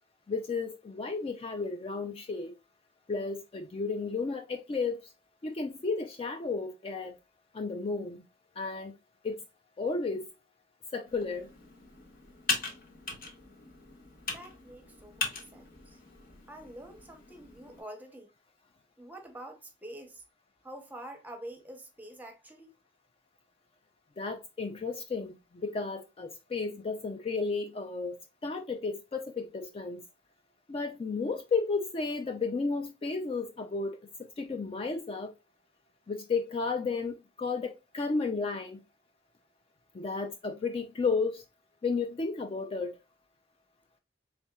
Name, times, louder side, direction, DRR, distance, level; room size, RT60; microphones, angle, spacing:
voice 1, 0.3-2.5 3.1-5.1 5.4-7.2 7.5-8.3 8.6-8.9 9.2-9.4 9.8-10.3 10.9-11.5 24.2-28.2 28.4-30.0 30.7-35.3 36.1-38.8 39.9-41.4 41.8-43.0, left 4 dB, 30° left, 0.4 m, -33 dB
Computer keyboard, 11.1-17.8, left 3 dB, 55° left, 1.2 m, -39 dB
voice 2, 14.3-16.0 16.5-18.3 19.0-20.2 20.6-22.7, right 1 dB, 10° right, 0.8 m, -46 dB
4.2 x 3.4 x 2.3 m
head